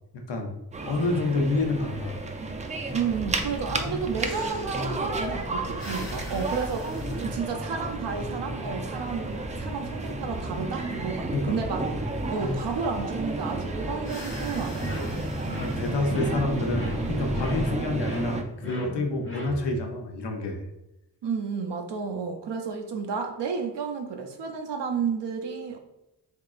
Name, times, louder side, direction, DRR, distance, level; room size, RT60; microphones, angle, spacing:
voice 1, 0.1-0.5 0.8-2.2 9.7-9.8 11.3-11.6 15.2-15.3 15.6-20.6, left 2 dB, 80° left, 2 dB, 0.7 m, -28 dB
sound 1, 0.7-18.4, right 2 dB, 20° right, 0.3 m, -32 dB
voice 2, 2.9-6.9 7.2-11.8 12.3-15.2 21.2-25.8, right 5 dB, 80° right, 3 dB, 0.5 m, -31 dB
sound 2, 3.1-17.7, equal, 50° left, 1.1 m, -39 dB
sound 3, 14.8-19.9, left 1 dB, 30° left, 1.0 m, -37 dB
3.7 x 3.5 x 2.4 m, 0.91 s
wide cardioid pair, 105°, 41 cm